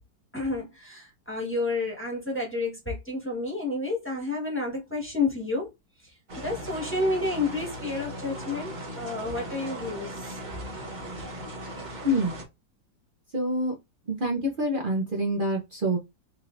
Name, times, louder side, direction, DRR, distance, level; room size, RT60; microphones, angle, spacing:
voice 1, 0.3-5.7 6.0-10.4, left 3 dB, 10° left, 1.1 m, -30 dB
sound 1, 6.3-12.4, right 1 dB, 35° right, 0.8 m, -38 dB
voice 2, 12.0-12.4 13.3-13.7 14.1-16.0, equal, 75° right, 0.4 m, -26 dB
4.3 x 3.3 x 2.5 m
omnidirectional pair, 2.1 m